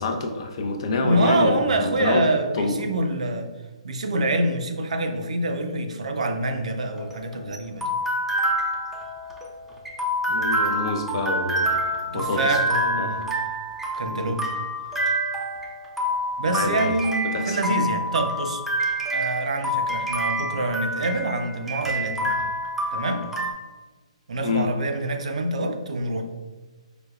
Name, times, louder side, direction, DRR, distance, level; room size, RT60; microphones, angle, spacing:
voice 1, 0.0-2.3 2.5-2.8 10.3-11.8 12.1-12.6 12.9-13.2 14.1-14.4 16.5-16.9 17.3-17.6 24.4-24.7, left 3 dB, 50° left, 4 dB, 0.5 m, -27 dB
voice 2, 1.0-3.5 3.8-7.9 12.1-13.3 14.0-14.5 16.4-18.6 19.1-22.3 22.9-23.2 24.3-26.2, right 2 dB, 75° right, 6 dB, 0.5 m, -26 dB
sound 1, 6.8-23.5, equal, 5° right, 0.4 m, -27 dB
4.9 x 2.2 x 2.3 m, 1.3 s
hypercardioid pair, 140°, 4 cm